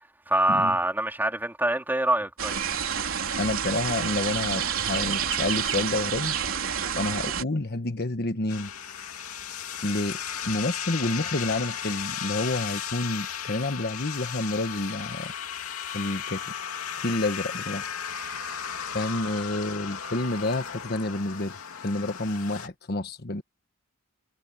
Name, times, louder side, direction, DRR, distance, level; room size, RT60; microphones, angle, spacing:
voice 1, 0.3-2.6, right 1 dB, 10° right, 3.8 m, -25 dB
sound 1, 2.4-7.4, right 7 dB, 70° right, 3.8 m, -29 dB
voice 2, 3.4-6.3 7.0-8.7 9.8-10.2 10.4-15.3 15.9-16.5 16.9-17.9 18.9-21.6 21.8-23.4, left 2 dB, 50° left, 1.3 m, -29 dB
sound 2, 8.5-22.7, left 8 dB, 85° left, 2.6 m, -35 dB
head